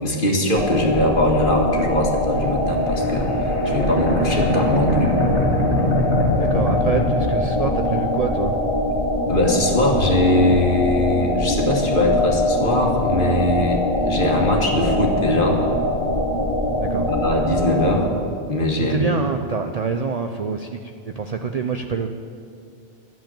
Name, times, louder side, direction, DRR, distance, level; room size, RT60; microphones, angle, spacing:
voice 1, 0.0-3.2 3.7-5.1 9.3-15.6 17.0-18.1 18.5-19.2, left 1 dB, 50° left, 0 dB, 1.9 m, -21 dB
sound 1, 0.5-18.1, left 1 dB, 30° left, 1.3 m, -23 dB
sound 2, 2.4-8.2, left 1 dB, 85° left, 2.1 m, -24 dB
voice 2, 6.4-8.6 16.9-17.1 18.9-22.1, right 5 dB, 45° right, 5 dB, 0.5 m, -25 dB
11.5 x 7.7 x 8.9 m, 2.3 s
omnidirectional pair, 1.1 m